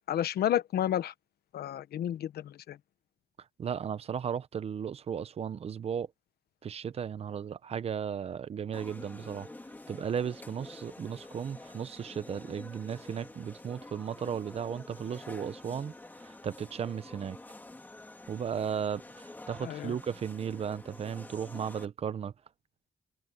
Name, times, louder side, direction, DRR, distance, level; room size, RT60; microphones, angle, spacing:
voice 1, 0.1-1.1 1.5-2.8 19.6-20.0, left 11 dB, 80° left, 1.1 m, -31 dB
voice 2, 3.6-6.1 6.6-9.5 9.9-15.9 16.2-17.4 18.3-22.3, right 7 dB, 40° right, 0.7 m, -35 dB
sound 1, 8.7-21.9, left 2 dB, 10° left, 1.9 m, -48 dB
wide cardioid pair, 165°, 16 cm